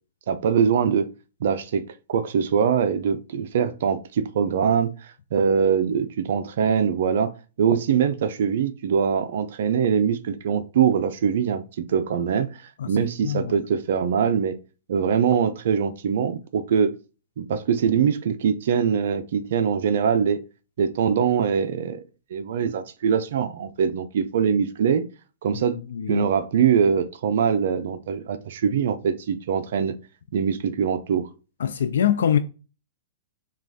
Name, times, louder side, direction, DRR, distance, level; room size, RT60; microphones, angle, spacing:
voice 1, 0.3-1.1 1.4-1.8 2.1-7.3 7.6-14.5 14.9-16.9 17.4-20.4 20.8-22.0 22.3-25.1 25.4-25.8 26.1-29.9 30.3-31.3, right 7 dB, 65° right, 0.4 m, -23 dB
voice 2, 13.2-13.5 25.5-25.6 25.9-26.2 31.6-32.4, left 9 dB, 80° left, 0.4 m, -23 dB
6.0 x 2.3 x 2.7 m
hypercardioid pair, 140°, 0 cm